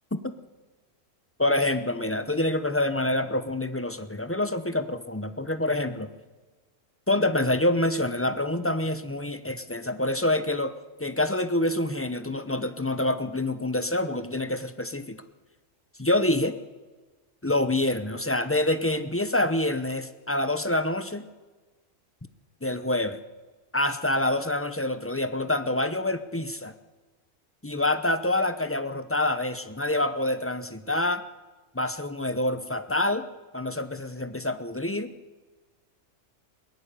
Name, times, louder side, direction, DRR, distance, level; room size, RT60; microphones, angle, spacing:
voice 1, 1.4-6.1 7.1-10.7 11.0-15.2 16.0-16.6 17.4-21.3 22.6-23.2 23.7-26.7 27.6-31.2 31.7-33.3 33.5-35.1, left 1 dB, 10° left, 10 dB, 0.8 m, -26 dB
21.5 x 18.0 x 6.9 m, 1.3 s
omnidirectional pair, 1.4 m